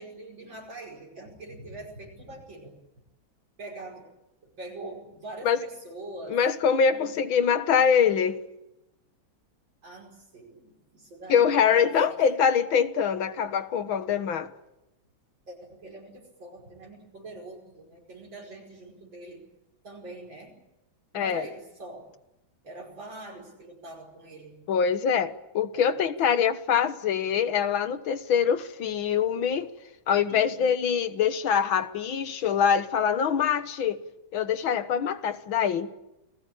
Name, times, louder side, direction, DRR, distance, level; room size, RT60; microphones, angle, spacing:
voice 1, 0.0-2.8 3.6-4.1 4.4-6.4 6.9-7.1 9.8-12.2 15.5-19.4 19.8-20.6 21.1-22.1 22.6-24.6 25.7-25.8 30.3-30.6, right 2 dB, 70° right, 5.9 m, -43 dB
voice 2, 6.3-8.4 11.3-14.5 21.1-21.4 24.7-29.7 30.1-34.0 34.3-35.9, left 7 dB, 80° left, 2.1 m, -24 dB
29.0 x 19.0 x 8.8 m
omnidirectional pair, 2.2 m